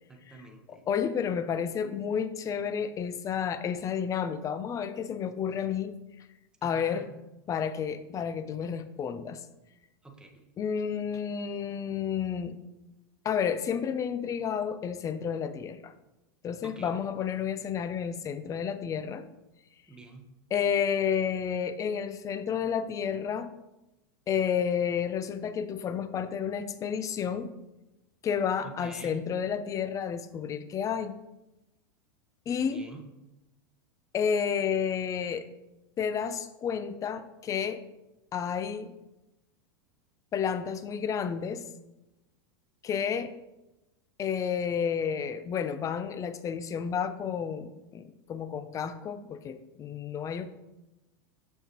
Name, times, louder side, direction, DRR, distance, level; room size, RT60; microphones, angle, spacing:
voice 1, 0.1-0.8 6.6-7.1 10.0-10.4 16.6-16.9 19.9-20.3 28.6-29.2 32.6-33.0, right 2 dB, 5° right, 3 dB, 1.0 m, -47 dB
voice 2, 0.7-5.9 6.6-7.1 7.5-9.4 10.6-12.6 13.2-15.9 16.4-19.2 20.5-23.5 24.3-27.5 28.2-31.2 32.5-32.9 34.1-35.5 36.0-37.8 38.3-38.9 40.3-41.6 42.8-43.3 44.2-50.5, left 7 dB, 25° left, 12 dB, 0.5 m, -31 dB
6.5 x 6.3 x 2.9 m, 0.97 s
hypercardioid pair, 115°, 12 cm